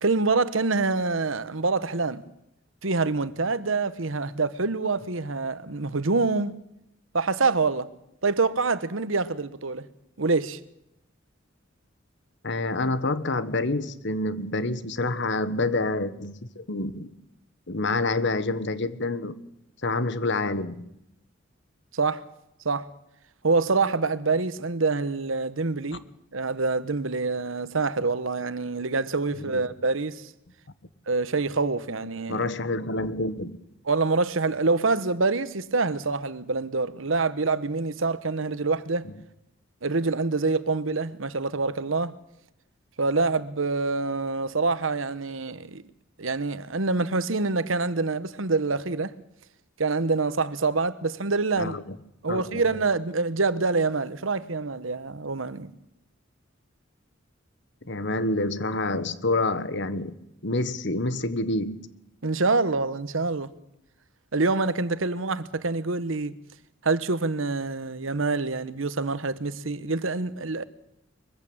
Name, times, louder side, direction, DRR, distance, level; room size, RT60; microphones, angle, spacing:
voice 1, 0.0-2.2 2.8-6.6 7.1-7.9 8.2-9.9 10.2-10.6 21.9-22.2 22.6-22.9 23.4-26.0 26.3-30.3 31.1-32.5 33.9-39.1 39.8-42.1 43.0-45.8 46.2-49.1 49.8-51.8 52.2-55.7 62.2-63.5 64.3-66.3 66.8-70.6, right 3 dB, 85° right, 1.2 m, -26 dB
voice 2, 12.4-17.1 17.7-19.3 19.8-20.8 29.3-29.6 32.3-33.6 51.6-52.0 52.3-52.6 57.8-60.2 60.4-61.8, left 2 dB, 65° left, 1.4 m, -27 dB
23.0 x 15.5 x 8.7 m
head